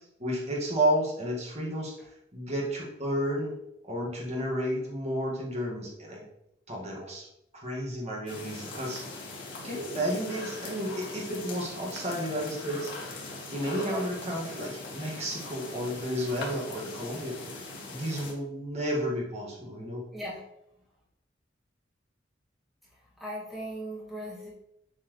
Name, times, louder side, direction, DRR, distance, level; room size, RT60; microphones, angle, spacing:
voice 1, 0.2-1.9 2.3-3.5 3.8-6.2 6.7-7.3 7.5-9.0 9.6-12.9 13.5-17.4 17.9-20.0, equal, 35° right, -3 dB, 1.9 m, -32 dB
sound 1, 8.3-18.3, left 3 dB, 90° left, 1.8 m, -41 dB
voice 2, 20.1-20.4 22.9-24.5, equal, ahead, -7 dB, 2.1 m, -39 dB
7.6 x 4.6 x 3.2 m, 0.81 s
head